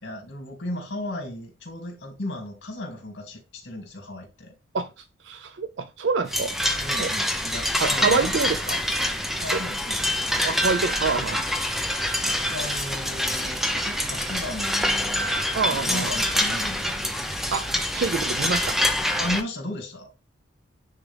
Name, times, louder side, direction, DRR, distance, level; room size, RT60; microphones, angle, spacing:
voice 1, 0.0-4.5 6.8-8.3 9.4-10.2 12.2-17.2 19.2-20.1, left 1 dB, 55° left, 2.7 m, -35 dB
voice 2, 4.7-6.6 7.0-7.1 7.8-8.8 9.5-9.6 10.4-11.4 15.5-16.1 17.5-17.7 17.9-18.8, right 4 dB, 65° right, 0.4 m, -26 dB
sound 1, 6.3-19.4, left 1 dB, ahead, 0.6 m, -26 dB
9.7 x 3.7 x 3.4 m
head